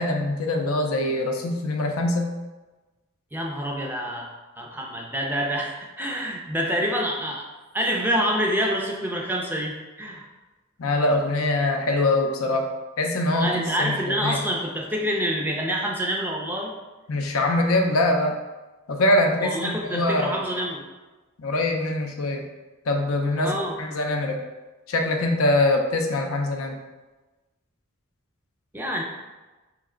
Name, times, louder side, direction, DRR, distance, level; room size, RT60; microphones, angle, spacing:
voice 1, 0.0-2.3 10.8-12.7 13.0-14.4 17.1-18.4 18.9-20.4 21.4-22.5 22.9-24.4 24.9-26.8, left 2 dB, 80° left, 3 dB, 0.5 m, -23 dB
voice 2, 3.3-4.3 4.6-7.4 7.7-10.2 13.4-16.7 19.4-20.8 23.4-23.8 28.7-29.0, equal, 10° right, -1 dB, 0.4 m, -27 dB
3.2 x 3.0 x 3.7 m, 1.2 s
head